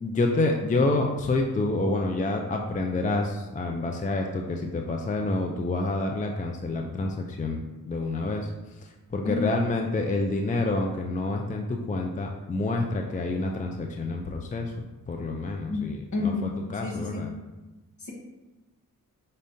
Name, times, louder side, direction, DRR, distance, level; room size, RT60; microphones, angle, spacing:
voice 1, 0.0-8.5 8.8-16.3 16.7-17.3, left 2 dB, 25° left, 2 dB, 0.4 m, -28 dB
voice 2, 9.2-9.6 15.6-17.2 18.0-18.1, left 4 dB, 55° left, -1 dB, 1.2 m, -31 dB
5.3 x 3.5 x 2.6 m, 1.1 s
cardioid pair, 85°, 34 cm